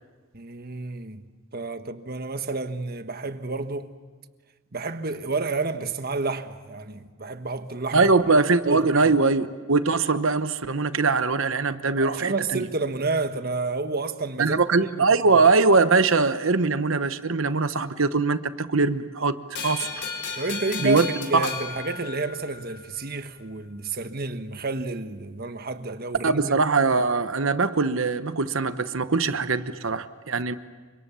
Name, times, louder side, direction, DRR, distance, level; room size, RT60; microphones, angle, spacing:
voice 1, 0.3-1.2 1.5-3.9 4.7-8.1 8.7-9.1 12.0-15.1 20.3-26.4, right 3 dB, 45° right, 1.3 m, -30 dB
voice 2, 7.9-12.6 14.4-19.4 19.6-19.9 20.8-21.1 21.3-21.5 26.2-30.5, right 3 dB, 65° right, 1.1 m, -22 dB
sound 1, 19.6-22.8, left 5 dB, 55° left, 4.0 m, -34 dB
30.0 x 25.5 x 7.0 m
head